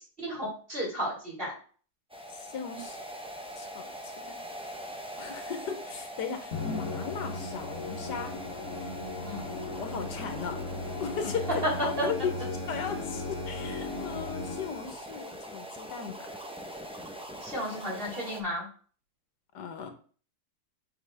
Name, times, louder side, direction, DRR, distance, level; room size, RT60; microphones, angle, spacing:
voice 1, 0.2-1.5 9.2-9.5 12.0-12.1 17.4-18.7, equal, 35° right, -4 dB, 4.2 m, -33 dB
sound 1, 2.1-18.4, equal, 5° right, 0.7 m, -43 dB
voice 2, 2.3-3.0 3.6-4.4 5.2-8.4 9.8-10.6 11.0-16.3 19.5-19.9, left 6 dB, 85° left, 7 dB, 1.7 m, -37 dB
Musical instrument, 6.5-15.0, left 3 dB, 50° left, 1.5 m, -37 dB
7.2 x 6.2 x 3.5 m, 0.42 s
omnidirectional pair, 1.7 m